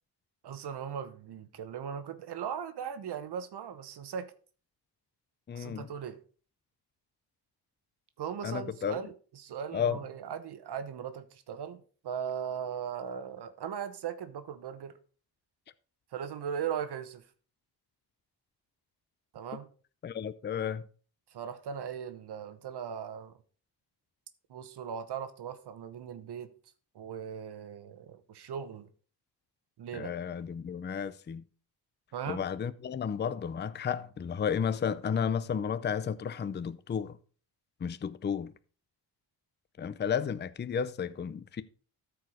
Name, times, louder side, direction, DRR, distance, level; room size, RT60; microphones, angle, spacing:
voice 1, 0.4-4.3 5.5-6.2 8.2-14.9 16.1-17.2 19.3-19.7 21.3-23.3 24.5-26.5 26.9-28.9 29.8-30.1 32.1-32.4, right 8 dB, 70° right, 1.1 m, -38 dB
voice 2, 5.5-5.9 8.4-9.0 9.7-10.0 20.0-20.9 29.9-31.4 32.3-37.2 37.8-38.5 39.8-41.6, left 7 dB, 25° left, 0.5 m, -32 dB
13.5 x 4.7 x 4.8 m
cardioid pair, 105°, 42 cm